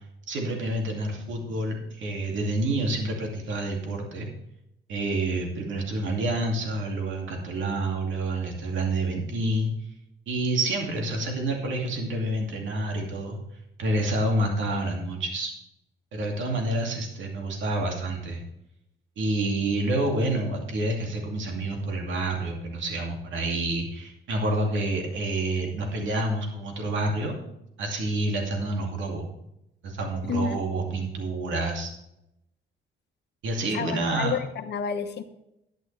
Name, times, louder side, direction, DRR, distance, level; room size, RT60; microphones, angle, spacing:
voice 1, 0.3-4.3 4.9-9.7 10.3-13.4 13.8-15.5 16.1-18.4 19.2-27.3 27.8-29.3 29.8-31.9 33.4-34.3, right 2 dB, 70° right, 1 dB, 2.5 m, -28 dB
voice 2, 30.3-30.6 33.7-35.2, left 6 dB, 60° left, 8 dB, 1.2 m, -30 dB
11.0 x 10.0 x 3.3 m, 0.83 s
cardioid pair, 90°, 20 cm